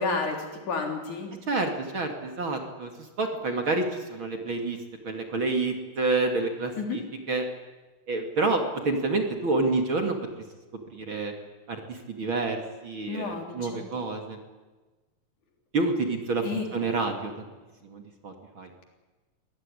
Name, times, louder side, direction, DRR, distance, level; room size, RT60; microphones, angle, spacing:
voice 1, 0.0-1.3 6.8-7.0 13.1-13.9 16.4-16.7, left 4 dB, 70° left, 3 dB, 5.0 m, -31 dB
voice 2, 1.5-2.9 3.2-4.8 5.0-7.0 7.3-7.5 8.1-10.2 10.9-11.3 11.7-12.6 12.8-14.4 15.7-17.3 17.8-18.7, right 3 dB, 40° right, 4 dB, 2.8 m, -28 dB
24.5 x 17.5 x 10.0 m, 1.2 s
omnidirectional pair, 3.6 m